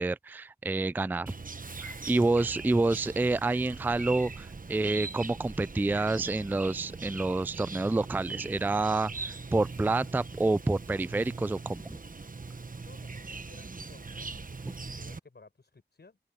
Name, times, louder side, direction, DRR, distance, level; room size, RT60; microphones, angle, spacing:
voice 1, 0.0-1.3 1.8-12.0, right 2 dB, 10° right, 0.3 m, -28 dB
Chirp tweet, 1.3-15.2, right 3 dB, 50° right, 1.1 m, -41 dB
voice 2, 12.8-16.2, left 3 dB, 70° left, 4.6 m, -57 dB
open air
wide cardioid pair, 45°, 18 cm